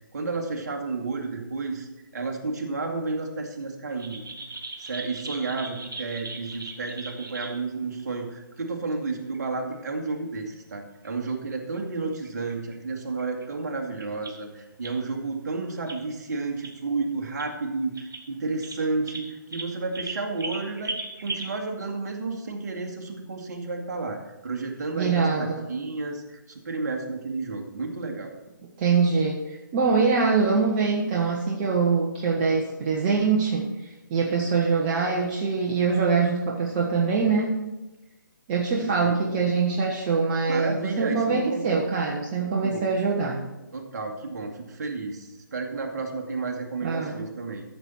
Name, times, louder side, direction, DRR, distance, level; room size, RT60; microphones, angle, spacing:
voice 1, 0.1-4.2 4.8-24.2 24.4-28.4 38.8-39.2 40.5-41.7 42.6-42.9 43.7-47.6, right 3 dB, 50° right, 2 dB, 2.0 m, -31 dB
sound 1, 4.0-7.6 8.8-8.9 9.3-9.4 9.7-9.8 10.1-10.2 10.5-10.6 11.0-11.8 12.2-12.7 13.1-13.4 14.0-14.4 14.8-15.0 15.8-16.0 16.6-16.7 17.2-17.5 17.9-18.2 18.6-21.5, right 3 dB, 75° right, 2.2 m, -38 dB
voice 2, 25.0-25.6 28.8-37.6 38.5-43.4 46.8-47.2, right 4 dB, 30° right, -1 dB, 1.1 m, -24 dB
13.5 x 7.0 x 4.5 m, 1.0 s
figure-of-eight pair, 140°, 11 cm